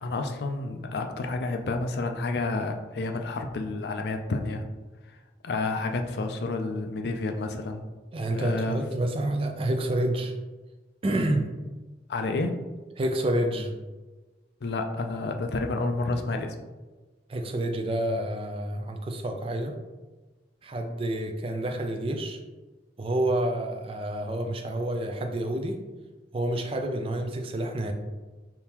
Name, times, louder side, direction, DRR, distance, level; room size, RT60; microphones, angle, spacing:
voice 1, 0.0-4.6 5.4-7.8 8.3-8.8 12.1-12.5 14.6-16.5, left 3 dB, 60° left, 5 dB, 0.4 m, -30 dB
voice 2, 8.1-10.3 11.0-11.5 13.0-13.7 17.3-19.8 20.6-22.4 23.0-25.8 26.3-27.9, right 1 dB, 30° right, 4 dB, 0.3 m, -28 dB
3.6 x 2.7 x 2.9 m, 1.2 s
head